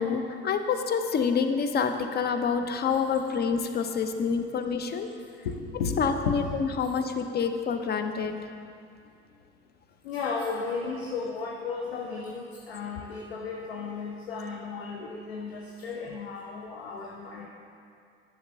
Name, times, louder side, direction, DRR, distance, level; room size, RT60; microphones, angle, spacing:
voice 1, 0.0-5.1 6.0-8.4, left 6 dB, 30° left, 7 dB, 0.6 m, -27 dB
voice 2, 5.4-6.0 6.2-6.4 10.0-17.5, left 5 dB, 80° left, 0 dB, 0.7 m, -34 dB
10.5 x 6.4 x 2.6 m, 2.4 s
figure-of-eight pair, 60°, 31 cm